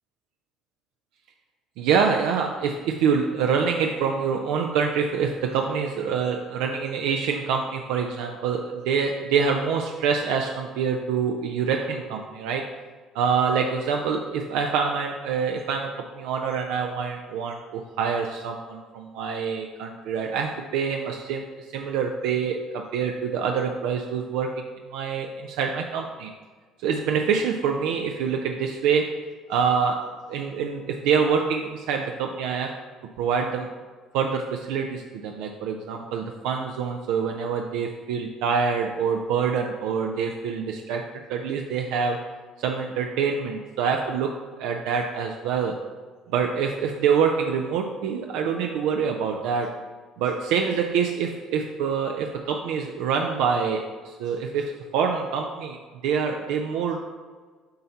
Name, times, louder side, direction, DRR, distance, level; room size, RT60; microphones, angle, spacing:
voice 1, 1.8-12.7 13.1-21.5 21.7-24.6 24.9-26.3 26.8-29.2 29.5-32.8 33.2-33.7 34.1-42.2 42.6-45.8 46.3-49.8 50.2-55.8 56.0-57.0, right 6 dB, 80° right, 3 dB, 0.4 m, -26 dB
7.5 x 2.8 x 5.7 m, 1.5 s
supercardioid pair, 80°, 0 cm